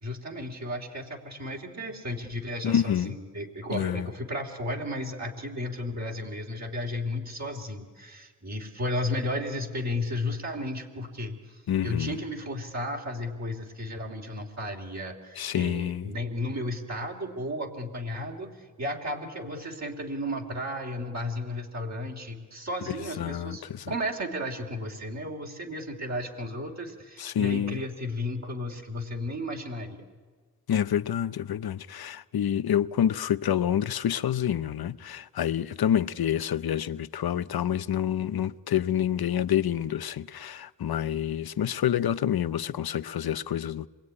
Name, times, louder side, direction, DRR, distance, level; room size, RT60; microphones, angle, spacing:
voice 1, 0.0-30.0, left 1 dB, 50° right, 3.0 m, -34 dB
voice 2, 2.6-3.2 3.7-4.1 11.7-12.2 15.4-16.1 22.9-23.9 27.2-27.8 30.7-43.9, left 10 dB, 85° left, 0.7 m, -28 dB
27.0 x 21.5 x 9.7 m
wide cardioid pair, 110°, 36 cm